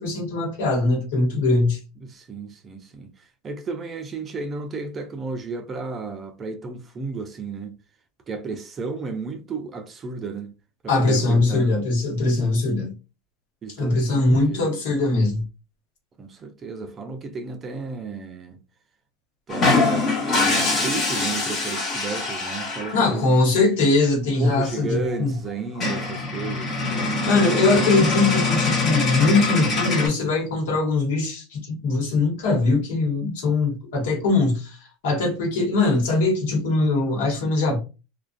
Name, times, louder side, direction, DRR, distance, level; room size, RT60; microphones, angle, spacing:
voice 1, 0.0-1.8 10.9-12.9 13.8-15.4 22.9-25.3 27.3-34.8 35.0-37.8, left 3 dB, 75° left, 1.1 m, -21 dB
voice 2, 2.0-3.1 3.4-7.7 8.3-10.5 10.8-11.7 12.2-12.6 13.6-14.6 16.2-18.6 19.5-23.4 24.4-27.5, right 4 dB, 30° right, 0.4 m, -33 dB
sound 1, 19.5-23.1 24.7-24.8 25.1-25.2 25.5-25.6 25.8-30.1, left 3 dB, 35° left, 1.1 m, -23 dB
2.3 x 2.1 x 2.4 m
hypercardioid pair, 105°, 0 cm